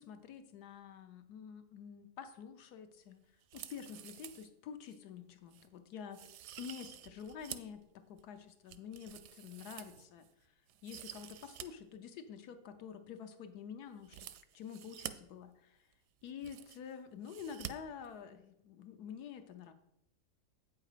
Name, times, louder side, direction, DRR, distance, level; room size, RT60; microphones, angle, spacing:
voice 1, 0.0-3.2 3.5-6.2 6.6-7.8 8.1-10.3 10.8-14.3 14.5-15.9 16.2-19.7, left 7 dB, 75° left, 9 dB, 1.3 m, -48 dB
sound 1, 3.4-4.5 4.9-5.0 5.5-5.7 6.1-7.8 8.2-10.3 10.7-11.7 11.9-12.0 14.0-15.1 15.9-16.0 16.2-16.9 17.2-17.7 18.0-18.1, right 11 dB, 80° right, 1.1 m, -49 dB
8.5 x 5.6 x 4.9 m, 0.82 s
omnidirectional pair, 1.7 m